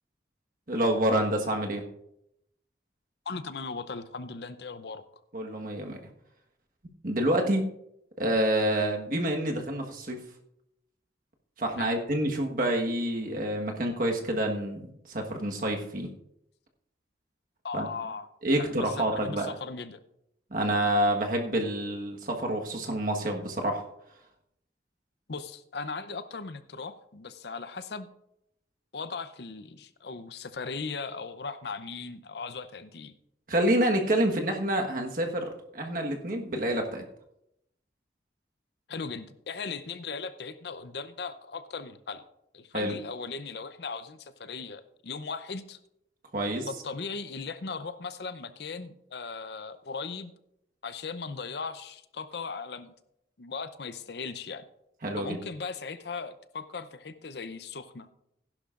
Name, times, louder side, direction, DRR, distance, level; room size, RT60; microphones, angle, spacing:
voice 1, 0.7-1.8 5.3-6.0 7.0-7.7 8.2-10.2 11.6-16.1 17.7-17.9 18.4-19.5 20.5-23.8 33.5-37.0 42.7-43.0 46.3-46.7 55.0-55.4, right 1 dB, 50° right, 2 dB, 1.4 m, -28 dB
voice 2, 3.3-5.0 11.8-12.0 17.6-18.3 18.5-20.0 25.3-28.1 28.9-33.1 38.9-42.2 42.5-45.8 46.7-50.3 50.8-52.9 53.4-54.6 55.2-58.1, left 4 dB, 65° left, 12 dB, 0.6 m, -38 dB
15.5 x 11.0 x 2.5 m, 0.79 s
head